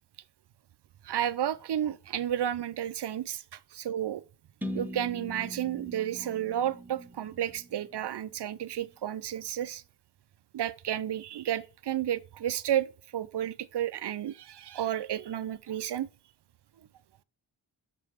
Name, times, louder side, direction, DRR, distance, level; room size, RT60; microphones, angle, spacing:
voice 1, 1.0-4.2 4.7-9.8 10.5-16.1, right 11 dB, 60° right, 0.5 m, -32 dB
sound 1, 4.6-8.5, equal, 5° right, 0.8 m, -41 dB
6.7 x 3.3 x 4.8 m
cardioid pair, 45°, 48 cm